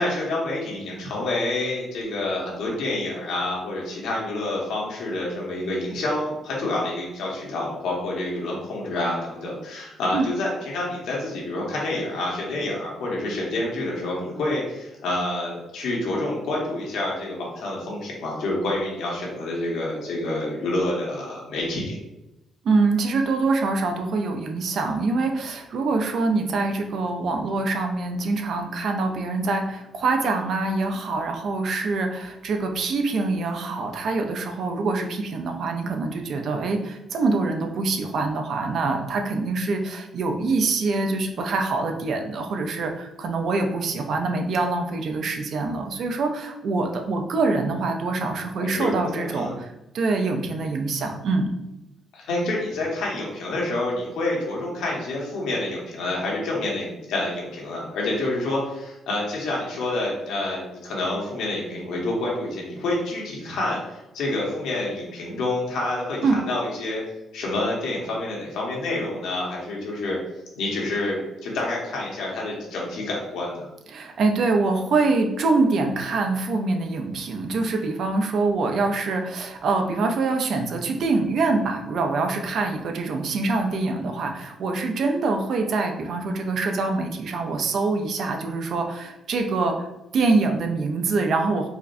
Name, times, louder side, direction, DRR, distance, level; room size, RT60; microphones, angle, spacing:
voice 1, 0.0-22.0 48.6-49.5 52.1-67.0 67.3-70.2 70.6-73.7, left 2 dB, 85° left, -3 dB, 1.2 m, -28 dB
voice 2, 22.6-49.5 49.9-51.5 66.2-66.4 73.9-89.9 90.1-91.7, right 3 dB, 65° right, 4 dB, 0.5 m, -24 dB
4.7 x 2.1 x 2.6 m, 0.93 s
cardioid pair, 90°, 0 cm